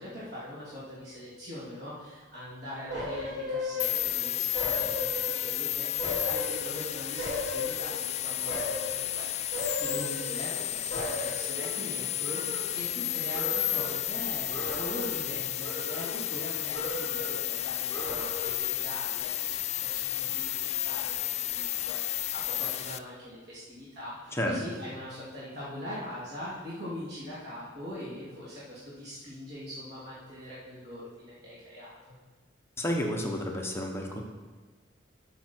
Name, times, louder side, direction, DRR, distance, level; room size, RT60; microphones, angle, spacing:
voice 1, 0.0-5.1 5.4-21.2 21.6-32.2, left 1 dB, 60° right, -9 dB, 2.9 m, -42 dB
sound 1, 2.9-4.2 4.5-5.6 6.0-8.1 8.5-9.0 9.5-10.6 10.9-13.1 13.3-14.0 14.5-15.3 15.6-16.4 16.7-17.4 17.9-18.7 19.1-19.2, left 1 dB, 90° right, 3.6 m, -36 dB
sound 2, 3.8-23.0, left 13 dB, 35° left, 0.3 m, -32 dB
voice 2, 32.8-34.2, equal, 15° left, 0 dB, 1.0 m, -31 dB
12.5 x 6.4 x 4.5 m, 1.3 s
head